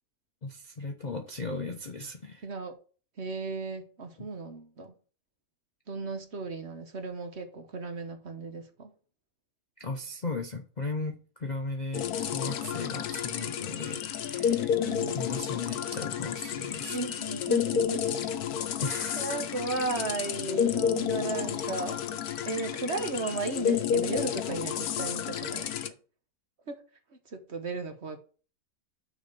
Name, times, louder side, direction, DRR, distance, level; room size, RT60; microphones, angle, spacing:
voice 1, 0.4-2.5 4.2-4.3 9.8-14.8 15.1-17.0 18.8-19.3, left 3 dB, 40° left, 0.6 m, -36 dB
voice 2, 2.4-2.8 3.2-4.9 5.9-8.9 14.8-15.2 16.9-18.2 19.2-22.0 22.4-25.9 26.7-26.8 27.3-28.2, right 3 dB, 50° right, 1.3 m, -35 dB
sound 1, 11.9-25.9, left 8 dB, 80° left, 1.3 m, -30 dB
6.4 x 5.1 x 6.7 m
omnidirectional pair, 1.6 m